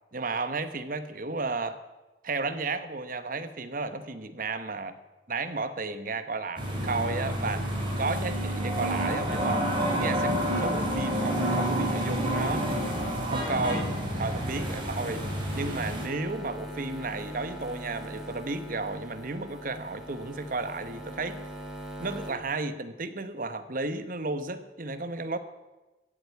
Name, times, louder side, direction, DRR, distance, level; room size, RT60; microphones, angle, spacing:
voice 1, 0.1-1.8 2.2-5.0 5.3-7.7 8.0-9.7 10.0-12.7 13.3-15.2 15.5-21.4 22.0-25.4, right 3 dB, 50° right, 11 dB, 1.1 m, -33 dB
sound 1, 6.6-16.0, equal, 30° right, 3.8 m, -29 dB
sound 2, 12.0-22.3, right 1 dB, 5° right, 2.6 m, -43 dB
15.5 x 8.0 x 8.3 m, 1.1 s
head